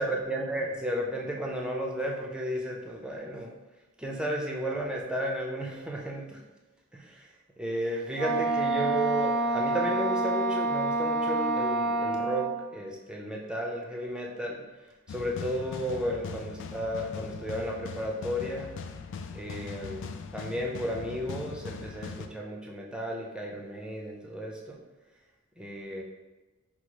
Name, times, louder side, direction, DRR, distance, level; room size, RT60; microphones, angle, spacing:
voice 1, 0.0-3.5 4.0-6.4 6.9-7.3 7.6-14.6 15.1-18.7 19.3-24.8 25.6-26.0, equal, 5° right, 0 dB, 0.5 m, -33 dB
Wind instrument woodwind instrument, 8.1-12.7, right 2 dB, 90° right, 0.6 m, -28 dB
sound 1, 15.1-22.3, left 5 dB, 60° left, 0.3 m, -40 dB
5.1 x 2.0 x 4.6 m, 1.2 s
head